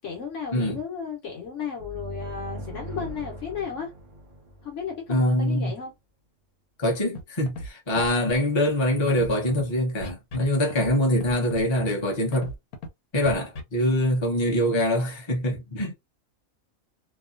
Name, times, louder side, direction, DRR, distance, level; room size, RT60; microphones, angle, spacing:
voice 1, 0.0-3.9 4.6-5.9, left 6 dB, 60° left, 1.2 m, -34 dB
sound 1, 1.8-5.4, right 1 dB, 45° right, 0.7 m, -40 dB
voice 2, 5.1-5.7 6.8-12.5 13.1-15.9, left 1 dB, 25° left, 0.8 m, -24 dB
Scratching (performance technique), 7.2-7.3 7.5-7.7 8.0-8.4 9.1-9.6 10.0-10.5 10.7-10.9 11.2-11.6 12.3-12.9 13.2-13.6, left 1 dB, 85° left, 1.2 m, -35 dB
2.8 x 2.2 x 2.5 m
omnidirectional pair, 1.5 m